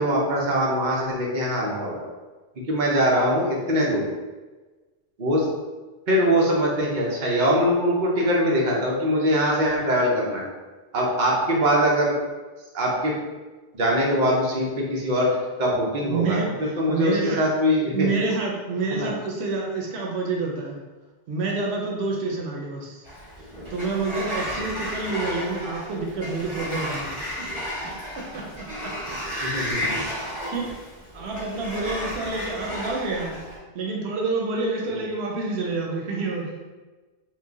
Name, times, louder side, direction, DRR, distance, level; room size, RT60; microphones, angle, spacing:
voice 1, 0.0-2.0 2.7-4.0 5.2-5.5 6.1-10.4 10.9-12.1 12.7-13.2 13.7-15.3 15.6-16.4 16.8-18.1 18.9-19.1 29.4-30.0, equal, 50° right, -3 dB, 0.8 m, -22 dB
voice 2, 16.0-17.5 17.9-20.8 21.3-23.0 23.7-27.5 28.2-28.9 30.4-30.8 31.1-33.4 33.7-36.5, right 3 dB, 90° right, -1 dB, 0.9 m, -28 dB
Sliding door, 23.0-33.6, equal, 30° right, 1.4 m, -33 dB
3.1 x 2.2 x 3.6 m, 1.3 s
omnidirectional pair, 1.1 m